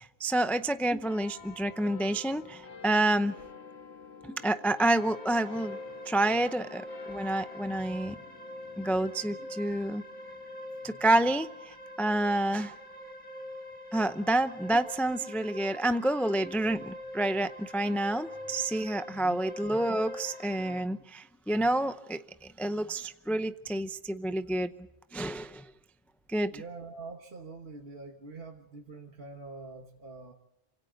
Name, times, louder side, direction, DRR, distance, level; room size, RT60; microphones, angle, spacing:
voice 1, 0.0-3.3 4.2-5.8 6.1-8.2 8.8-10.0 10.8-12.7 13.9-24.7 25.1-25.7 26.3-26.6, right 1 dB, ahead, 10 dB, 0.5 m, -29 dB
sound 1, 1.0-13.9 14.6-14.7, left 6 dB, 65° left, 1.8 m, -51 dB
sound 2, 4.5-20.8, left 1 dB, 45° left, 4.2 m, -44 dB
voice 2, 19.1-19.4 26.5-30.3, right 3 dB, 55° right, 2 dB, 1.7 m, -45 dB
28.0 x 25.5 x 4.0 m, 0.90 s
omnidirectional pair, 1.2 m